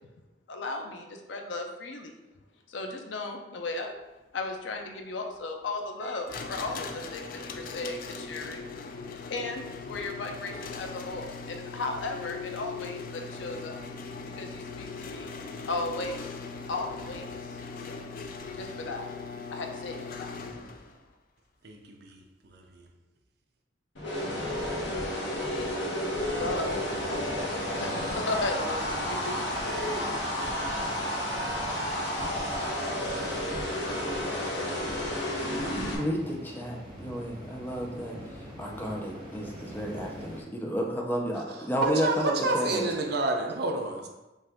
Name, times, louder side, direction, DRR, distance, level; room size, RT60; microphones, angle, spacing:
voice 1, 0.5-2.1 2.7-3.9 4.3-8.6 9.1-13.8 14.3-15.3 15.7-16.3 16.7-17.3 17.9-18.1 18.5-19.1 19.5-20.4 25.5-25.8 26.2-29.4 29.7-30.2, left 2 dB, 85° left, 0.6 m, -36 dB
sound 1, 6.3-21.0, left 4 dB, 50° left, 0.4 m, -40 dB
voice 2, 21.6-22.9 41.8-44.1, right 2 dB, 60° right, 0.6 m, -29 dB
sound 2, 24.0-36.0, left 1 dB, 70° left, 1.2 m, -31 dB
sound 3, 26.2-40.4, equal, 25° right, 1.3 m, -44 dB
voice 3, 35.6-42.9, equal, 10° left, 0.6 m, -32 dB
5.4 x 2.5 x 3.6 m
head